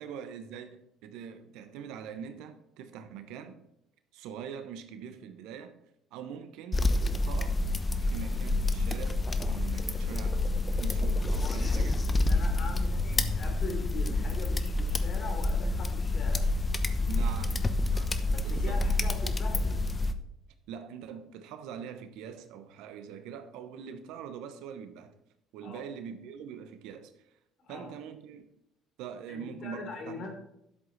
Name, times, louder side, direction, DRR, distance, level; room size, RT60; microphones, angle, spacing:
voice 1, 0.0-3.6 4.1-5.7 6.1-6.9 7.2-7.6 8.0-10.5 10.7-12.0 17.1-19.1 20.7-25.2 25.5-27.1 27.7-28.4 29.0-30.3, right 7 dB, 70° right, 1.1 m, -43 dB
sound 1, 6.7-20.1, left 2 dB, 25° left, 1.0 m, -28 dB
voice 2, 11.4-16.5 18.3-19.8 25.6-25.9 27.6-27.9 29.3-30.3, left 3 dB, 55° left, 3.3 m, -42 dB
11.0 x 7.7 x 4.1 m
hypercardioid pair, 65°, 0 cm